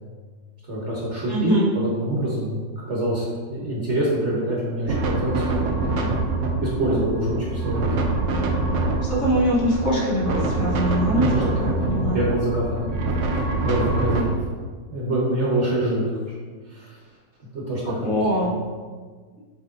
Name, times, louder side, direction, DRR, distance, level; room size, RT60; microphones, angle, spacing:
voice 1, 0.7-6.2 6.6-8.0 11.2-13.0 13.3-14.3 14.9-16.1 16.7-16.9 17.5-18.1 18.4-18.6, right 1 dB, 45° right, -5 dB, 1.3 m, -26 dB
voice 2, 1.3-1.7 9.0-12.2 14.1-14.2 17.8-18.5, equal, 50° left, -6 dB, 1.6 m, -23 dB
sound 1, 4.9-14.2, right 2 dB, 65° right, 0.7 m, -25 dB
7.2 x 3.4 x 3.8 m, 1.5 s
omnidirectional pair, 1.9 m